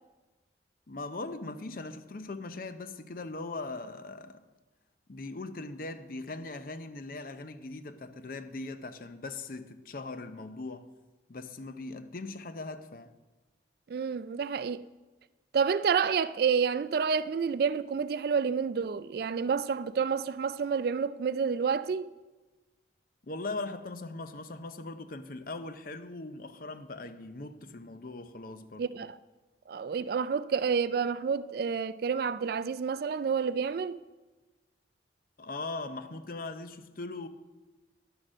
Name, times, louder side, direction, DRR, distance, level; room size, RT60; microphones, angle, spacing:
voice 1, 0.9-4.4 5.1-10.9 11.3-13.1 23.2-28.8 35.4-37.3, left 3 dB, 50° left, 0.6 m, -40 dB
voice 2, 13.9-14.8 15.5-22.1 28.8-29.2 29.7-34.0, right 6 dB, 55° right, 0.3 m, -29 dB
11.0 x 6.6 x 6.2 m
head